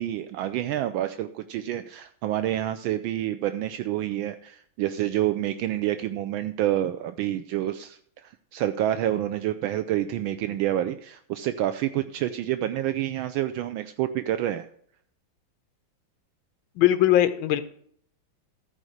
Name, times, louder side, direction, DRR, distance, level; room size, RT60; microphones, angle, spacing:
voice 1, 0.0-14.7, right 12 dB, 80° right, 11 dB, 1.3 m, -28 dB
voice 2, 16.8-17.6, left 12 dB, 75° left, 12 dB, 1.5 m, -20 dB
14.0 x 5.0 x 6.4 m, 0.63 s
omnidirectional pair, 2.3 m